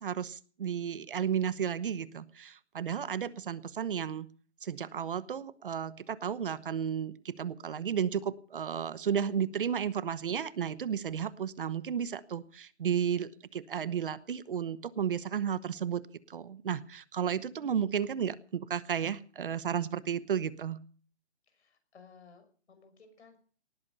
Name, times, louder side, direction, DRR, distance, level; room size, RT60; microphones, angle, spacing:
voice 1, 0.0-4.3 4.6-20.8, right 8 dB, 50° right, 17 dB, 1.0 m, -33 dB
voice 2, 21.5-23.4, left 5 dB, 70° left, 8 dB, 6.0 m, -57 dB
19.0 x 14.5 x 5.4 m, 0.42 s
hypercardioid pair, 170°, 34 cm